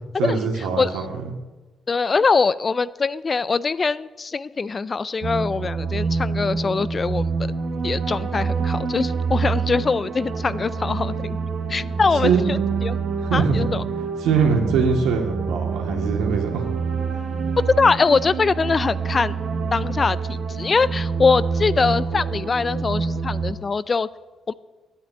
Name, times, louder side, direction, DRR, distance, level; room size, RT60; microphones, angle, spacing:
voice 1, 0.2-1.3 12.2-12.4 13.2-13.7 14.2-16.7 17.1-17.2, right 5 dB, 90° right, 2 dB, 2.4 m, -22 dB
voice 2, 1.9-7.3 7.8-11.4 11.7-13.0 13.3-13.8 17.6-19.3 19.7-24.1 24.5-24.6, left 4 dB, 35° left, 18 dB, 0.5 m, -22 dB
sound 1, 5.2-23.5, right 5 dB, 70° right, 1.7 m, -26 dB
9.6 x 9.4 x 9.6 m, 1.2 s
cardioid pair, 90°, 0 cm